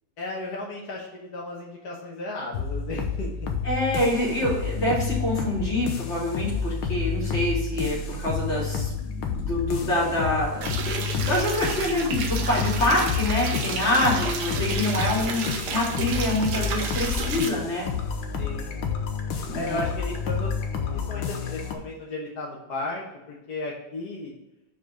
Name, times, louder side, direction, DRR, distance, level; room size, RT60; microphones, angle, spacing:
voice 1, 0.2-3.5 12.8-13.3 15.2-15.4 18.4-18.8 19.5-20.5 20.9-24.3, left 2 dB, 60° left, -3 dB, 1.7 m, -35 dB
sound 1, 2.5-21.7, left 6 dB, 80° left, 1.6 m, -30 dB
voice 2, 3.6-17.9 19.5-19.8, left 1 dB, 35° left, -6 dB, 3.2 m, -26 dB
sound 2, 10.6-17.5, right 5 dB, 65° right, 1.4 m, -32 dB
5.9 x 5.1 x 5.0 m, 0.95 s
omnidirectional pair, 2.0 m